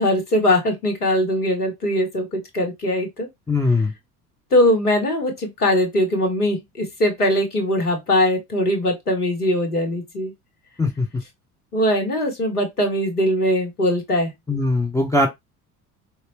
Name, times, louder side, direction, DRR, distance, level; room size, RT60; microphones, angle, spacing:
voice 1, 0.0-3.3 4.5-10.3 11.7-14.3, left 1 dB, 90° left, 1.0 m, -21 dB
voice 2, 3.5-3.9 10.8-11.1 14.5-15.3, left 2 dB, 5° left, 0.5 m, -20 dB
4.1 x 2.3 x 2.5 m
figure-of-eight pair, 60°, 44 cm